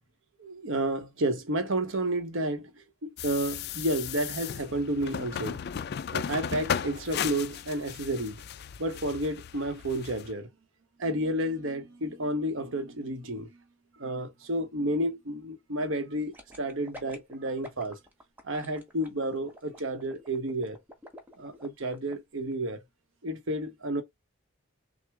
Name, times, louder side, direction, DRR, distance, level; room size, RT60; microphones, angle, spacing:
voice 1, 0.4-2.7 3.0-5.6 6.1-8.4 8.8-10.5 11.0-13.5 14.0-18.0 18.4-20.8 21.4-22.8 23.2-24.0, right 1 dB, 70° right, 0.8 m, -31 dB
sound 1, 3.2-10.3, left 8 dB, 50° left, 0.3 m, -35 dB
sound 2, 16.3-22.1 22.5-22.6, equal, 10° right, 0.8 m, -47 dB
6.0 x 2.0 x 3.4 m
head